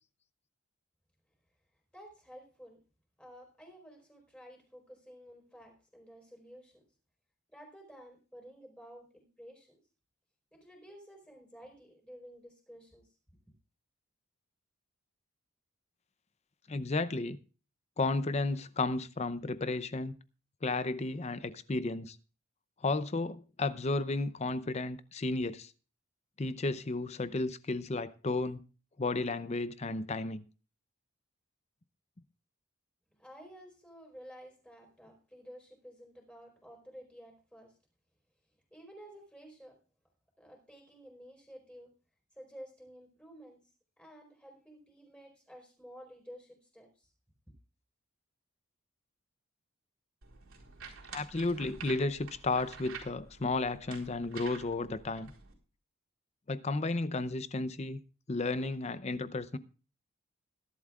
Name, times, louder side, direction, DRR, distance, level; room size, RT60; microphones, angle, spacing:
voice 1, 1.9-2.8 3.2-6.8 7.5-9.8 10.5-13.2 33.1-37.8 38.7-39.8 40.4-41.9 42.3-43.7 44.0-47.1 47.5-47.6, equal, 5° left, 4.5 m, -53 dB
voice 2, 16.7-17.4 18.0-20.1 20.6-22.2 22.8-25.7 26.4-28.6 29.0-30.4 51.1-55.3 56.5-58.0 58.3-59.6, left 3 dB, 30° left, 0.6 m, -33 dB
sound 1, 50.2-55.5, right 6 dB, 80° right, 4.2 m, -49 dB
21.0 x 12.0 x 2.4 m
head